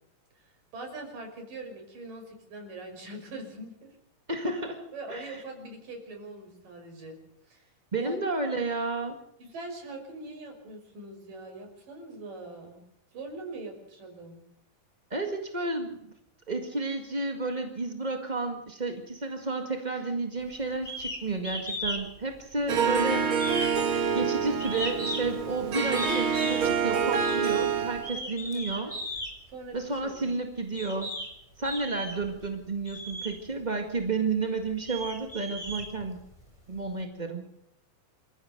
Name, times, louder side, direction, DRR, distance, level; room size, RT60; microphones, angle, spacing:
voice 1, 0.4-4.0 4.9-7.2 7.5-7.7 8.0-8.2 9.4-12.8 13.1-14.4 28.2-28.9 29.5-30.3, right 2 dB, 65° right, 3 dB, 7.3 m, -42 dB
voice 2, 4.3-5.4 7.9-9.2 15.1-16.1 16.5-23.3 24.1-28.9 29.7-31.1 31.6-36.2 36.7-37.4, right 3 dB, 30° right, 4 dB, 0.7 m, -31 dB
sound 1, 20.9-21.2 21.4-22.0 22.3-23.0 23.4-25.4 26.0-26.7 27.1-27.4 28.0-29.3 30.1-30.2 30.8-31.3 31.6-32.3 32.9-33.3 34.0-34.1 34.6-36.4, equal, 10° left, 6.3 m, -36 dB
Harp, 22.7-28.2, right 6 dB, 50° right, 1.8 m, -27 dB
27.5 x 15.0 x 6.6 m, 0.81 s
omnidirectional pair, 4.2 m